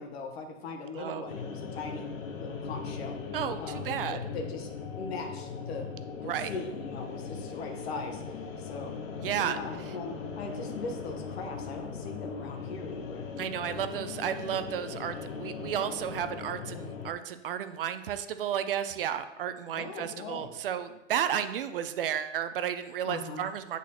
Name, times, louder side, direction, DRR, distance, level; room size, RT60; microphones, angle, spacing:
voice 1, 0.0-2.1 2.4-3.2 3.6-4.7 5.0-5.9 6.2-8.2 8.6-8.9 9.4-13.3 13.7-13.8 19.8-20.5 23.0-23.4, left 3 dB, 55° left, 3 dB, 1.2 m, -40 dB
voice 2, 0.9-1.4 3.3-4.2 6.2-6.5 9.2-9.6 9.9-10.0 13.4-23.8, right 9 dB, 45° right, 10 dB, 0.5 m, -33 dB
sound 1, 1.3-17.1, left 5 dB, 85° left, 1.0 m, -39 dB
8.2 x 4.1 x 2.9 m, 0.96 s
hypercardioid pair, 145°, 38 cm